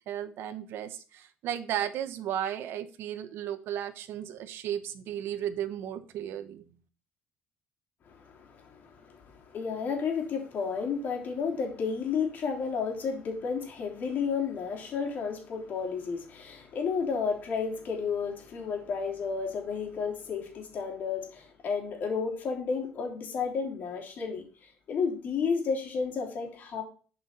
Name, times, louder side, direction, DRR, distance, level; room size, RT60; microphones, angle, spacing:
voice 1, 0.1-6.6, right 10 dB, 70° right, 0.9 m, -34 dB
voice 2, 8.1-24.4 24.9-26.8, left 5 dB, 50° left, 3.2 m, -32 dB
11.5 x 5.6 x 4.2 m
cardioid pair, 150°, 4 cm